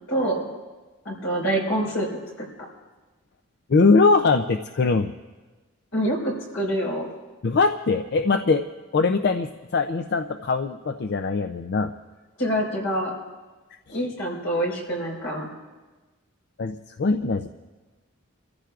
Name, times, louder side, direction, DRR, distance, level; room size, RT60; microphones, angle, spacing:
voice 1, 0.1-0.4 1.0-2.1 2.4-2.5 5.9-7.1 12.4-13.1 13.9-15.5, right 1 dB, 80° left, -2 dB, 4.6 m, -26 dB
voice 2, 3.7-5.1 7.4-8.6 8.9-11.9 13.9-14.0 16.6-17.5, left 4 dB, 50° left, 7 dB, 0.4 m, -21 dB
30.0 x 14.5 x 2.4 m, 1.3 s
head